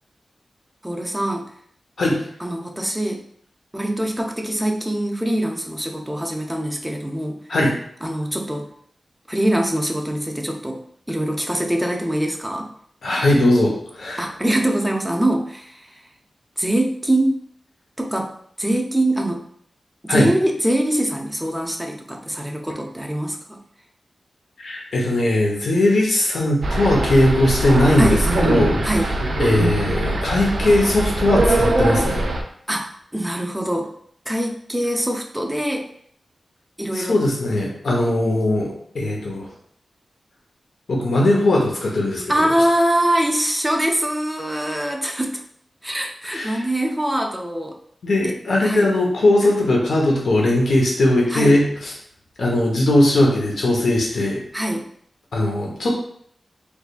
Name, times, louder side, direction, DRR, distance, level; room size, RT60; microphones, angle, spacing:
voice 1, 0.8-1.5 2.4-3.2 3.7-7.4 8.0-8.7 9.3-10.8 11.1-12.7 14.2-16.0 16.6-17.4 18.0-18.3 18.6-19.4 20.0-23.6 28.0-28.2 28.8-29.1 32.7-33.9 34.3-35.9 36.8-37.1 42.3-45.4 45.8-47.8 48.2-48.3 48.6-48.9 51.3-51.5 54.5-54.8, right 1 dB, 5° right, 2 dB, 0.5 m, -23 dB
voice 2, 13.0-14.2 20.1-20.3 24.6-28.8 29.4-32.3 36.9-39.5 40.9-42.5 46.3-46.6 48.0-51.9 52.4-54.4 55.3-55.9, left 1 dB, 80° left, -2 dB, 0.9 m, -19 dB
sound 1, 26.6-32.4, right 1 dB, 70° right, 0.5 m, -21 dB
3.6 x 3.2 x 2.4 m, 0.64 s
wide cardioid pair, 115°, 0 cm